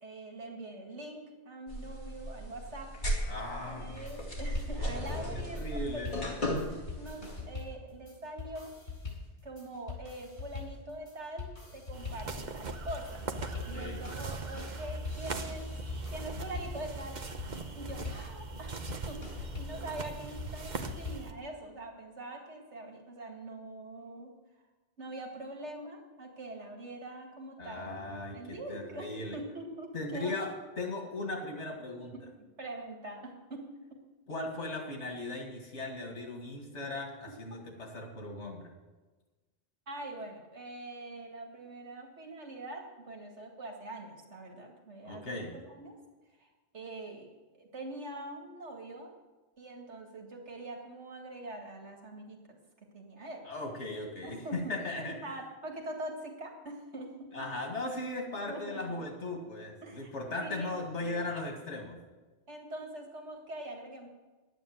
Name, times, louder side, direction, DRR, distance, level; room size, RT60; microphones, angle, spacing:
voice 1, 0.0-2.9 3.2-3.3 3.6-6.0 6.7-8.7 9.4-13.2 13.7-15.7 16.1-17.2 17.7-24.3 25.0-28.1 28.3-30.4 32.1-32.2 32.6-33.6 37.5-37.6 39.9-45.4 45.7-46.0 46.4-46.5 46.7-47.3 47.5-49.1 49.6-52.6 52.9-53.4 54.2-57.3 58.5-59.0 59.8-60.1 60.4-61.3 62.5-64.1, right 1 dB, 80° right, 1 dB, 2.3 m, -43 dB
sound 1, 1.7-7.4, equal, 45° left, 2.6 m, -36 dB
voice 2, 3.3-4.1 5.3-6.2 13.5-14.0 27.6-29.4 29.9-32.1 34.3-38.7 45.0-45.6 53.4-55.3 57.3-62.0, left 2 dB, 85° left, 2 dB, 2.3 m, -38 dB
sound 2, 3.9-21.4, left 4 dB, 70° left, 4.5 m, -44 dB
sound 3, 11.9-21.3, right 3 dB, 45° right, 1.0 m, -40 dB
11.0 x 9.4 x 7.7 m, 1.2 s
omnidirectional pair, 1.2 m